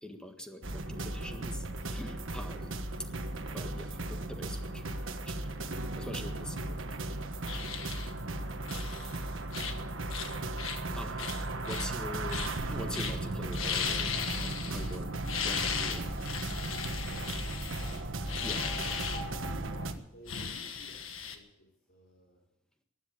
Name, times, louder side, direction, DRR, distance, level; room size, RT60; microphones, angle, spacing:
voice 1, 0.0-2.7 3.5-5.4 5.9-7.1 10.2-11.3 11.6-15.2 15.4-16.2 18.4-18.7, left 1 dB, 5° left, 4 dB, 1.7 m, -44 dB
sound 1, 0.6-19.9, right 2 dB, 65° right, 1.4 m, -36 dB
sound 2, 7.5-8.1 8.7-9.2 9.5-9.8 10.1-10.8 11.2-11.9 12.3-12.6 12.9-13.2 13.5-15.0 15.2-19.2 20.3-21.4, left 7 dB, 75° left, 1.6 m, -37 dB
voice 2, 16.7-18.8 19.4-22.4, equal, 55° left, -4 dB, 3.7 m, -57 dB
15.5 x 10.5 x 8.9 m, 0.86 s
head